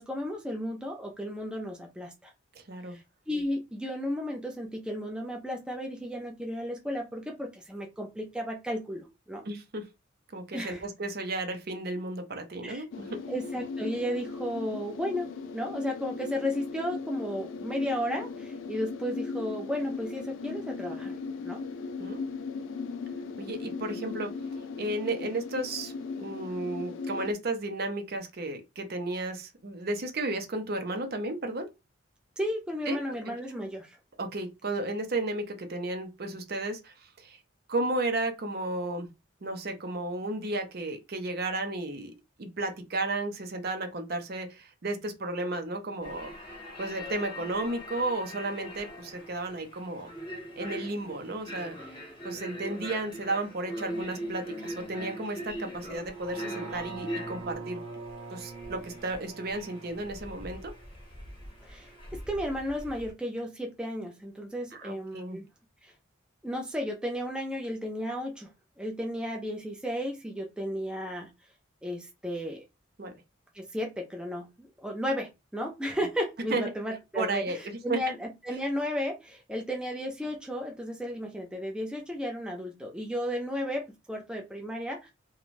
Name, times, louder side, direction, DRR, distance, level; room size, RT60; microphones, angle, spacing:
voice 1, 0.0-2.3 2.9-9.5 10.5-10.8 12.6-12.8 13.3-21.1 21.4-21.6 32.4-34.0 61.7-65.4 65.8-65.9 66.4-68.5 68.8-71.3 71.8-72.6 73.5-85.1, equal, 5° right, 0.4 m, -34 dB
voice 2, 2.6-3.0 9.5-9.8 10.3-13.2 22.0-22.2 23.4-24.3 24.8-31.7 32.9-33.0 34.2-37.4 37.7-39.1 39.4-42.1 42.4-50.1 50.6-57.8 58.3-60.7 64.8-65.4 73.0-73.1 76.5-76.7 77.2-78.0, right 2 dB, 50° right, 0.6 m, -33 dB
sound 1, 12.9-27.3, left 4 dB, 75° left, 0.3 m, -38 dB
sound 2, 46.0-63.1, equal, 25° left, 0.7 m, -41 dB
sound 3, 55.9-62.1 62.5-62.6, right 4 dB, 85° right, 0.8 m, -44 dB
2.5 x 2.2 x 3.0 m
head